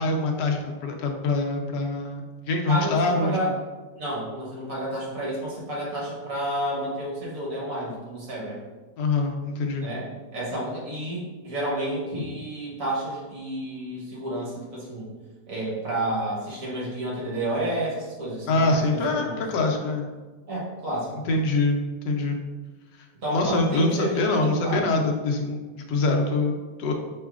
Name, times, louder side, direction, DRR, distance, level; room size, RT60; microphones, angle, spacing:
voice 1, 0.0-3.4 9.0-9.9 12.1-12.2 18.5-20.1 21.3-22.4 23.3-26.9, left 2 dB, 85° left, 2 dB, 1.2 m, -24 dB
voice 2, 2.7-3.5 4.0-8.6 9.8-15.1 15.5-19.4 20.5-21.3 23.2-24.9, right 1 dB, 55° right, -5 dB, 1.4 m, -30 dB
5.6 x 3.1 x 2.4 m, 1.3 s
omnidirectional pair, 1.8 m